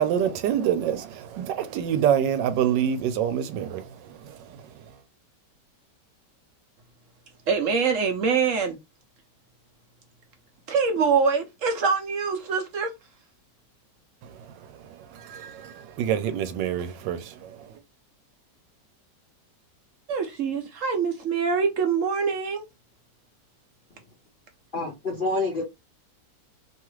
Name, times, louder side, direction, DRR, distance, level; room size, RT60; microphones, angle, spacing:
voice 1, 0.0-5.0 14.2-17.8, right 9 dB, 90° right, 1.3 m, -27 dB
voice 2, 7.5-8.8 10.7-12.9 20.1-22.6, right 5 dB, 70° right, 0.7 m, -24 dB
voice 3, 24.7-25.6, left 2 dB, 60° left, 0.5 m, -27 dB
3.0 x 2.4 x 3.0 m
omnidirectional pair, 1.9 m